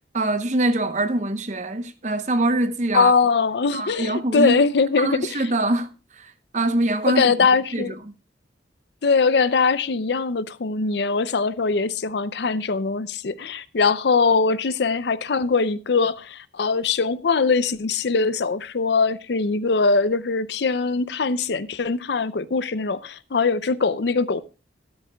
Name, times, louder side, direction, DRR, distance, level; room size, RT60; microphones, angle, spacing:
voice 1, 0.1-3.1 3.7-4.6 5.0-5.9 6.2-7.3 7.7-7.9, right 2 dB, 40° right, 0.9 m, -23 dB
voice 2, 2.9-5.4 7.1-7.9 9.0-24.4, left 4 dB, 65° left, 0.5 m, -22 dB
14.0 x 13.0 x 2.3 m
head